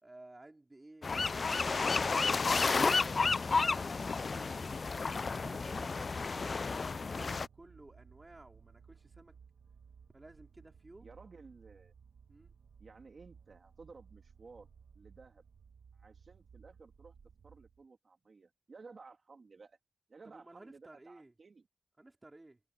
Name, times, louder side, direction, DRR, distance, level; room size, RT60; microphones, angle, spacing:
voice 1, 0.0-1.1 1.4-6.2 6.8-9.4 10.1-11.1 12.3-12.5 20.2-21.3 22.0-22.6, right 2 dB, 20° right, 3.3 m, -55 dB
sound 1, 1.0-7.5, left 4 dB, 40° left, 0.3 m, -31 dB
sound 2, 1.6-17.8, right 6 dB, 70° right, 1.2 m, -59 dB
voice 2, 11.0-11.9 12.8-14.7 14.9-15.4 15.9-17.1 17.4-19.8 20.1-21.7, right 4 dB, 45° right, 3.1 m, -55 dB
wide cardioid pair, 165°, 0 cm